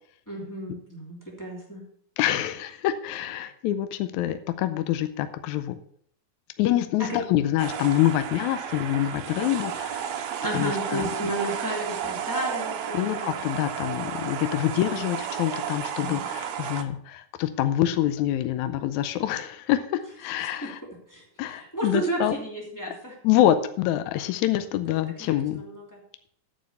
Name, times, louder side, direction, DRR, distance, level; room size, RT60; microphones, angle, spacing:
voice 1, 0.3-1.8 7.0-7.2 10.4-13.4 14.8-15.1 16.0-16.2 20.6-20.7 21.1-23.2 25.2-26.0, right 1 dB, 5° left, -2 dB, 2.7 m, -32 dB
voice 2, 2.2-5.8 6.6-10.3 10.5-11.0 12.9-20.8 21.4-22.4 23.2-25.6, left 13 dB, 85° left, 10 dB, 2.0 m, -26 dB
sound 1, 7.6-16.8, right 9 dB, 70° right, 2.0 m, -33 dB
9.4 x 6.7 x 6.9 m, 0.64 s
omnidirectional pair, 3.4 m